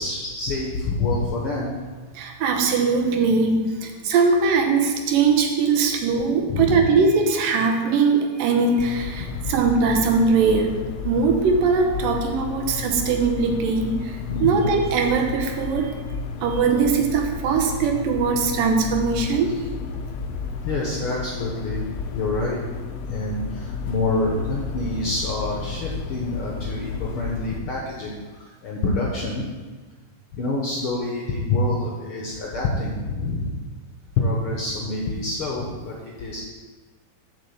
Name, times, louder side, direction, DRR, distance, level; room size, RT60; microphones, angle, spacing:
voice 1, 0.0-1.8 6.5-7.0 9.2-9.5 14.3-14.7 20.6-21.8 22.1-22.8 23.1-29.4 30.3-33.5 34.2-36.4, left 2 dB, 65° left, -2 dB, 1.4 m, -27 dB
voice 2, 2.1-16.0 16.4-19.6, right 4 dB, 90° right, 3 dB, 2.7 m, -21 dB
sound 1, 8.8-27.6, left 5 dB, 90° left, 1.4 m, -32 dB
7.3 x 5.9 x 7.1 m, 1.4 s
omnidirectional pair, 3.8 m